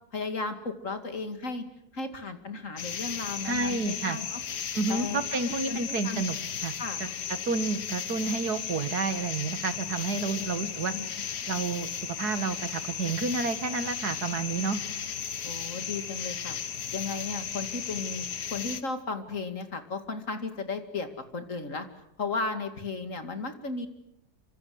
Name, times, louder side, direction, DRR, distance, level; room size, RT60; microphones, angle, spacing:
voice 1, 0.1-1.7 1.9-4.4 4.9-5.2 5.5-6.2 6.8-7.0 10.3-10.5 10.9-11.0 15.4-16.6 16.9-21.1 21.3-21.9 22.2-23.9, left 3 dB, 50° left, 8 dB, 2.8 m, -35 dB
sound 1, 2.8-18.8, left 7 dB, 80° left, 1.9 m, -35 dB
voice 2, 3.4-4.2 4.8-6.4 6.6-6.7 7.0-7.1 7.5-10.9 11.5-11.9 12.2-14.8, right 4 dB, 75° right, 11 dB, 2.2 m, -30 dB
27.5 x 25.0 x 7.9 m, 0.76 s
omnidirectional pair, 1.7 m